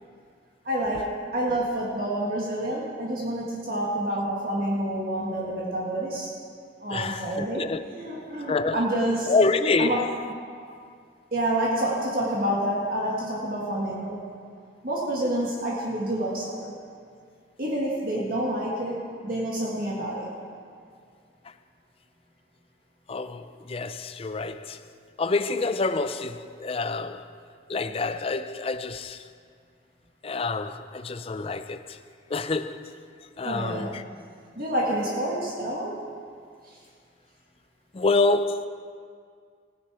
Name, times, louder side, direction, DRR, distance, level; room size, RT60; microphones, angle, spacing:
voice 1, 0.6-6.3 6.8-9.3 9.8-10.0 11.3-14.2 14.8-16.7 17.6-20.3 33.4-33.9 34.5-36.1, right 1 dB, 50° right, 1.7 m, -28 dB
voice 2, 6.9-7.8 8.5-8.9 9.3-10.1 10.7-10.8 23.1-24.9 25.2-27.4 27.7-29.3 30.2-32.0 32.3-32.9 33.4-34.0 37.9-38.7, left 3 dB, 30° left, 0.4 m, -27 dB
16.5 x 9.5 x 4.8 m
head